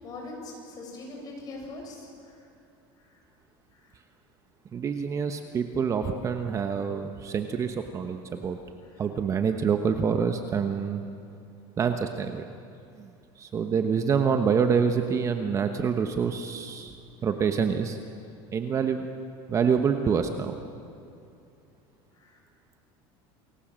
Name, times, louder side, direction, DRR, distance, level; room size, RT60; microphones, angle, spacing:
voice 1, 0.0-2.4 3.0-3.1 22.1-22.4, left 2 dB, 35° left, 0 dB, 7.9 m, -41 dB
voice 2, 4.7-8.6 9.0-11.0 11.8-12.4 13.0-16.9 17.2-18.0 18.5-19.0 19.5-20.6, right 6 dB, 25° right, 6 dB, 1.2 m, -26 dB
29.0 x 21.5 x 7.6 m, 2.6 s
cardioid pair, 150°, 12 cm